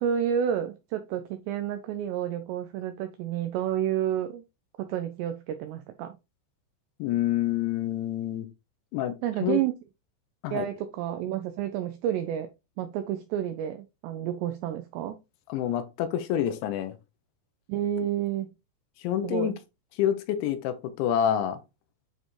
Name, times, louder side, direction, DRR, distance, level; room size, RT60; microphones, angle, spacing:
voice 1, 0.0-4.4 4.8-6.2 9.2-9.8 10.5-12.5 12.8-15.2 17.7-18.5 19.2-19.5, right 10 dB, 90° right, 2.4 m, -30 dB
voice 2, 7.0-8.5 8.9-9.2 9.4-9.6 10.4-10.7 15.5-17.0 19.0-19.5 20.0-21.6, left 10 dB, 75° left, 3.0 m, -27 dB
9.0 x 4.1 x 3.1 m
omnidirectional pair, 5.7 m